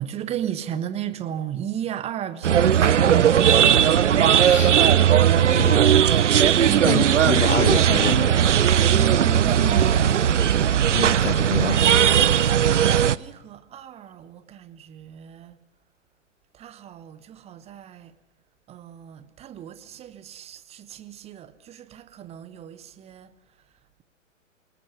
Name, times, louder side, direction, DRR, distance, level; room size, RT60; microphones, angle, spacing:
voice 1, 0.0-3.9 6.6-7.0 8.9-10.1 13.1-15.6 16.5-18.1 18.7-23.3, right 10 dB, 15° right, 1.0 m, -34 dB
sound 1, 2.4-13.2, right 9 dB, 70° right, 0.8 m, -18 dB
voice 2, 4.4-4.7 5.3-5.8 6.8-8.3 10.9-11.8, left 6 dB, 75° left, 1.3 m, -27 dB
27.5 x 19.5 x 6.3 m
figure-of-eight pair, 115°, 38 cm